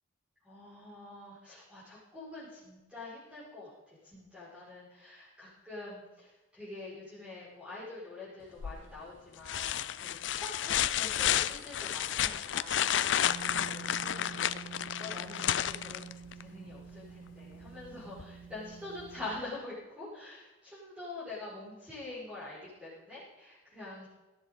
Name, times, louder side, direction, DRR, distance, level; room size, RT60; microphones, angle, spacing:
voice 1, 0.4-24.1, left 2 dB, 5° right, -11 dB, 6.4 m, -46 dB
sound 1, 8.6-9.0 9.5-16.4 18.2-18.3, left 10 dB, 75° left, 0.5 m, -31 dB
sound 2, 13.2-19.4, right 6 dB, 55° right, 4.0 m, -48 dB
18.0 x 14.5 x 4.2 m, 1.1 s
head